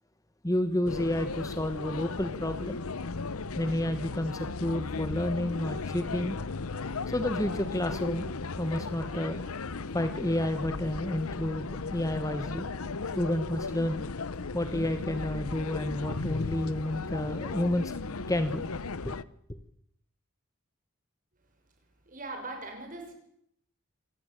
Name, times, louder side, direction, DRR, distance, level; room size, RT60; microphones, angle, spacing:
voice 1, 0.4-2.8 3.5-6.4 7.1-9.5 9.9-12.7 13.1-14.1 14.5-17.9 18.3-18.6 19.0-19.2, left 1 dB, 15° left, 10 dB, 1.2 m, -30 dB
sound 1, 0.9-19.2, left 4 dB, 80° left, 0.9 m, -36 dB
voice 2, 22.1-23.1, right 2 dB, 35° right, 4 dB, 5.8 m, -40 dB
27.0 x 15.5 x 8.9 m, 0.73 s
head